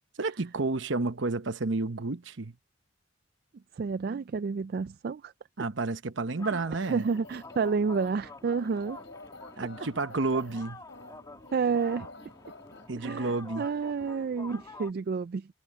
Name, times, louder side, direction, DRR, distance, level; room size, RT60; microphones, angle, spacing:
voice 1, 0.2-2.5 5.6-7.1 9.6-10.8 12.9-13.7, right 3 dB, 70° right, 1.0 m, -30 dB
voice 2, 3.8-5.3 6.5-9.0 11.5-12.1 13.0-15.5, right 5 dB, 50° right, 0.3 m, -30 dB
sound 1, 6.4-14.9, left 2 dB, 20° left, 2.2 m, -48 dB
sound 2, 6.8-12.9, left 3 dB, 65° left, 7.7 m, -49 dB
head